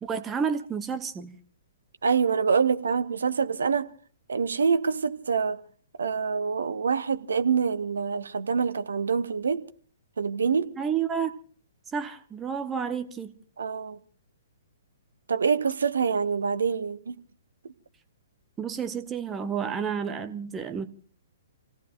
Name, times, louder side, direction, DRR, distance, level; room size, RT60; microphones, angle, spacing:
voice 1, 0.0-1.4 10.8-11.4 11.9-13.3 18.6-20.9, right 7 dB, 15° right, 1.0 m, -30 dB
voice 2, 2.0-3.9 4.3-5.6 6.0-9.6 10.2-10.7 13.6-14.0 15.3-17.2 17.6-17.7, right 6 dB, 65° right, 1.0 m, -26 dB
29.5 x 17.5 x 2.5 m
figure-of-eight pair, 120°, 0 cm